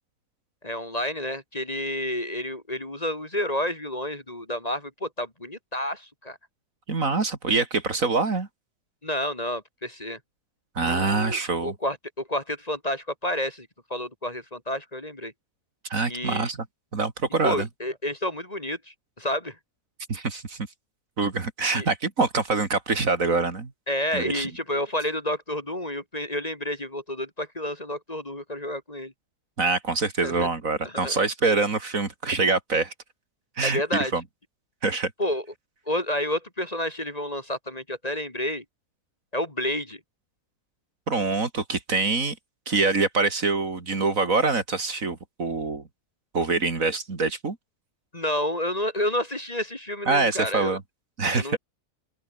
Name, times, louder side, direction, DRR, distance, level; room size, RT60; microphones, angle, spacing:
voice 1, 0.6-6.4 9.0-10.2 10.8-15.3 16.1-16.5 17.4-19.5 21.7-21.9 23.9-29.1 30.2-30.5 30.8-31.2 33.6-34.1 35.2-35.4 35.9-38.6 39.3-40.0 48.1-50.8 51.3-51.6, left 1 dB, 25° left, 2.9 m, -30 dB
voice 2, 6.9-8.5 10.8-11.7 15.9-16.7 16.9-17.7 20.1-20.6 21.2-23.7 24.1-24.5 29.6-32.9 33.6-34.2 34.8-35.1 41.1-42.4 42.7-45.8 46.3-47.6 50.1-50.8 51.2-51.6, right 3 dB, 55° right, 2.9 m, -25 dB
open air
omnidirectional pair, 1.7 m